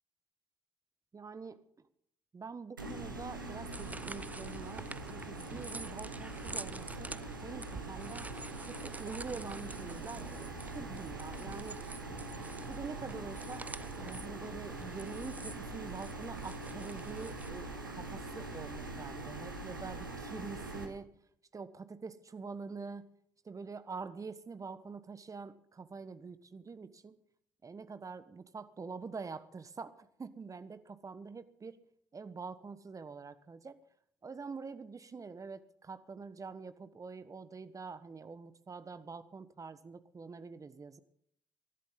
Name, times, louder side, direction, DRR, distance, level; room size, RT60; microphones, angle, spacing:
voice 1, 1.1-1.6 2.3-7.1 7.4-8.3 8.7-10.3 10.6-11.8 12.6-13.7 14.0-21.1 21.5-23.1 23.4-27.2 27.6-31.8 32.1-33.8 34.2-41.0, right 4 dB, 30° right, 13 dB, 1.3 m, -45 dB
sound 1, 2.8-20.9, right 2 dB, 90° right, 1.4 m, -43 dB
sound 2, 3.4-17.5, right 2 dB, 15° right, 0.6 m, -48 dB
23.0 x 12.0 x 3.9 m, 0.69 s
figure-of-eight pair, 45°, 11 cm